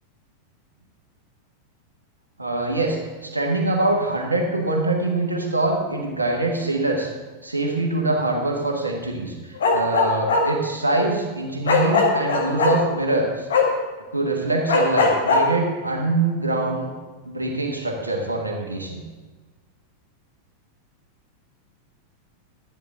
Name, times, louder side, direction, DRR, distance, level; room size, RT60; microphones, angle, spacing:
voice 1, 2.4-7.1 7.4-13.5 14.1-16.9 17.2-19.0, right 2 dB, 80° right, 1 dB, 1.6 m, -24 dB
Bark, 9.6-10.4 11.7-12.7 13.5-13.6 14.7-15.4, left 4 dB, 65° left, 1.7 m, -18 dB
11.5 x 10.5 x 3.8 m, 1.3 s
figure-of-eight pair, 90°, 0 cm